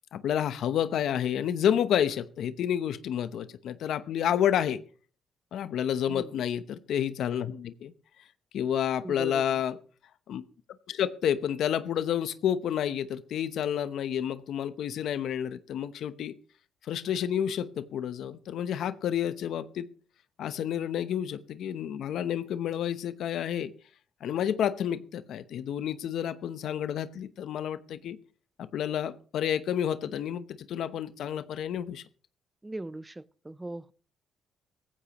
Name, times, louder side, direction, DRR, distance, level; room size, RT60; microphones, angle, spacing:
voice 1, 0.1-4.8 5.5-7.9 8.5-9.8 10.3-10.4 10.9-16.3 16.9-19.9 20.4-23.7 24.2-28.2 28.6-32.0, left 9 dB, 75° left, 0.8 m, -30 dB
voice 2, 9.0-9.6 32.6-33.9, right 2 dB, 15° right, 0.5 m, -40 dB
17.0 x 15.0 x 3.0 m
cardioid pair, 90°, 0 cm